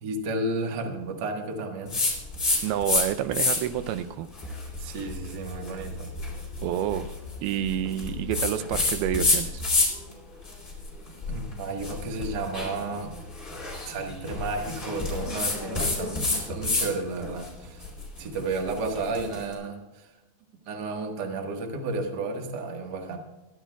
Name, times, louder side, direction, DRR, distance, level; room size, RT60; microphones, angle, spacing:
voice 1, 0.0-2.0 4.8-6.1 11.3-13.1 13.8-17.9 18.2-20.1 20.7-23.2, right 3 dB, 55° right, 3 dB, 1.1 m, -32 dB
sound 1, 1.9-3.0 3.3-3.8 4.3-10.1 10.4-16.9 17.2-19.4, left 3 dB, 15° left, 3.2 m, -28 dB
voice 2, 2.6-4.3 6.6-7.2 7.4-9.6, right 11 dB, 85° right, 11 dB, 2.6 m, -28 dB
23.0 x 12.0 x 2.3 m, 1.1 s
omnidirectional pair, 4.4 m